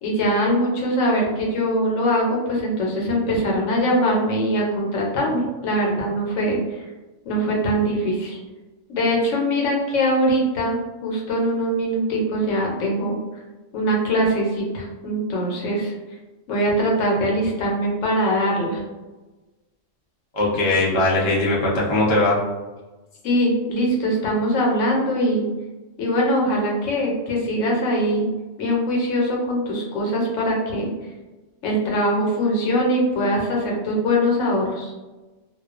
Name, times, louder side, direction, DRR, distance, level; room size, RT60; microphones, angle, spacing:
voice 1, 0.0-6.8 7.2-8.4 8.9-13.2 13.7-15.9 16.5-18.8 23.2-25.5 26.0-28.3 28.6-30.9 31.6-34.9, equal, 80° left, -2 dB, 1.0 m, -22 dB
voice 2, 20.3-22.4, left 2 dB, 40° left, -5 dB, 0.4 m, -20 dB
2.3 x 2.2 x 2.3 m, 1.2 s
omnidirectional pair, 1.3 m